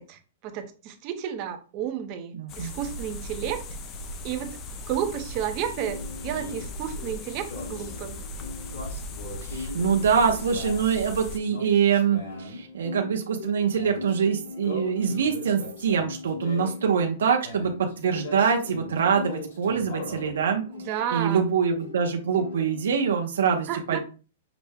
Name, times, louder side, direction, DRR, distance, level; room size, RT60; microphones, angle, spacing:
voice 1, 0.0-3.6 4.2-4.6 4.9-8.2 20.7-21.5 23.7-24.0, right 10 dB, 30° right, 7 dB, 0.6 m, -32 dB
voice 2, 2.3-2.7 9.4-20.6 21.1-24.0, right 6 dB, 85° right, 3 dB, 0.7 m, -24 dB
sound 1, 2.5-11.4, left 2 dB, 20° left, 0.3 m, -38 dB
sound 2, 5.7-23.1, left 3 dB, 75° left, 1.9 m, -39 dB
5.9 x 2.1 x 3.4 m, 0.36 s
hypercardioid pair, 175°, 0 cm